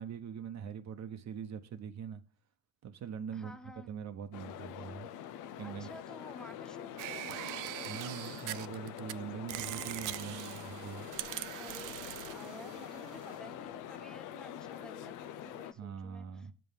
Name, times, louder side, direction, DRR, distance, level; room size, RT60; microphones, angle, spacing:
voice 1, 0.0-2.2 2.8-3.6 3.9-5.1 5.6-5.9 7.9-11.1 15.8-16.5, right 7 dB, 65° right, 0.9 m, -42 dB
voice 2, 3.3-3.9 5.6-7.6 11.6-16.5, equal, ahead, 0.9 m, -52 dB
sound 1, 4.3-15.7, left 10 dB, 90° left, 0.6 m, -45 dB
sound 2, 7.0-9.1 9.5-13.4, right 15 dB, 90° right, 0.5 m, -42 dB
7.6 x 5.5 x 5.5 m
cardioid pair, 90°, 30 cm